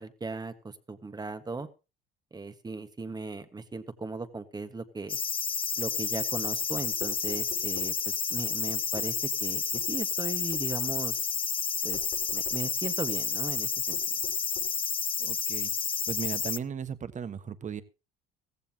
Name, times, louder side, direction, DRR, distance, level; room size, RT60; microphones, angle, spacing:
voice 1, 0.0-1.7 2.3-5.2 5.8-11.1 11.8-12.0 12.3-14.0, right 3 dB, 20° right, 10 dB, 1.5 m, -37 dB
sound 1, 5.1-16.6, left 6 dB, 25° left, 0.6 m, -30 dB
sound 2, 7.0-8.0 9.0-9.1 9.7-9.9 10.5-10.7 11.9-12.7 13.9-14.8, left 7 dB, 75° left, 5.6 m, -45 dB
voice 2, 15.2-15.7 16.1-17.8, right 7 dB, 35° right, 13 dB, 1.4 m, -36 dB
15.5 x 15.0 x 2.9 m, 0.28 s
supercardioid pair, 90°, 20 cm